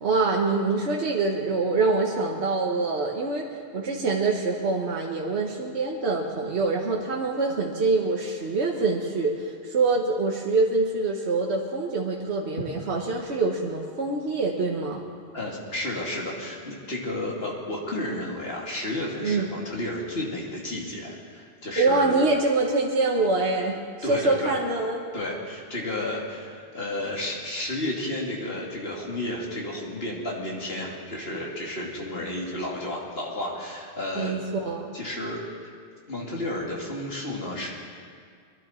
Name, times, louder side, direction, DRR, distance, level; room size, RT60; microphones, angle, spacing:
voice 1, 0.0-15.0 19.2-19.5 21.8-23.8 24.1-25.0 34.2-34.9, right 3 dB, 75° right, -1 dB, 1.4 m, -25 dB
voice 2, 15.3-22.2 24.0-24.6 25.1-34.3 34.9-35.4 36.1-37.7, left 1 dB, 60° left, -2 dB, 2.7 m, -32 dB
23.0 x 11.5 x 4.4 m, 2.1 s
omnidirectional pair, 1.1 m